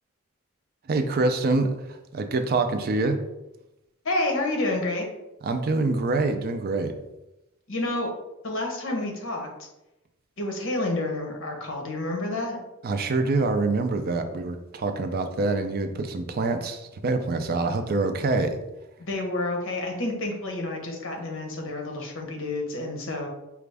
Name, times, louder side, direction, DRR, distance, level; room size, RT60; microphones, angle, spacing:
voice 1, 0.9-1.7 2.1-3.2 5.4-6.9 12.8-18.6, right 3 dB, 45° right, 7 dB, 0.4 m, -25 dB
voice 2, 4.0-5.1 7.7-8.1 8.4-9.7 10.4-12.6 19.0-23.3, left 2 dB, 65° left, 2 dB, 0.9 m, -29 dB
5.0 x 2.4 x 3.3 m, 0.93 s
head